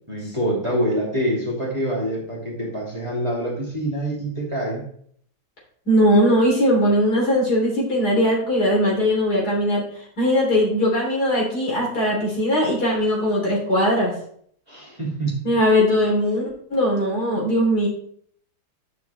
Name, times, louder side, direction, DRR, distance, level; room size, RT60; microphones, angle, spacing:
voice 1, 0.1-4.8 14.7-15.4, right 1 dB, 20° right, -4 dB, 2.6 m, -25 dB
voice 2, 5.9-14.1 15.4-17.9, equal, 70° left, -3 dB, 4.0 m, -20 dB
10.5 x 6.4 x 3.5 m, 0.62 s
omnidirectional pair, 1.7 m